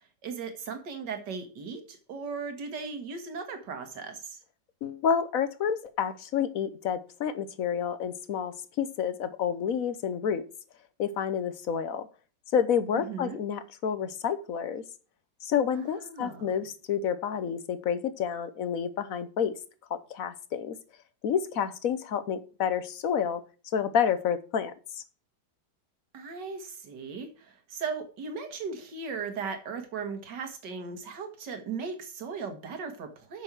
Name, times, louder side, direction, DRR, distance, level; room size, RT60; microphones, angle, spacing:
voice 1, 0.2-4.4 13.0-13.4 15.7-16.6 26.1-33.4, right 5 dB, 80° right, 6 dB, 2.1 m, -37 dB
voice 2, 4.8-10.4 11.0-12.1 12.5-14.8 15.4-19.5 19.9-20.8 21.2-23.4 23.7-24.7, left 7 dB, 60° left, 13 dB, 1.2 m, -29 dB
7.9 x 6.4 x 6.1 m, 0.37 s
omnidirectional pair, 1.9 m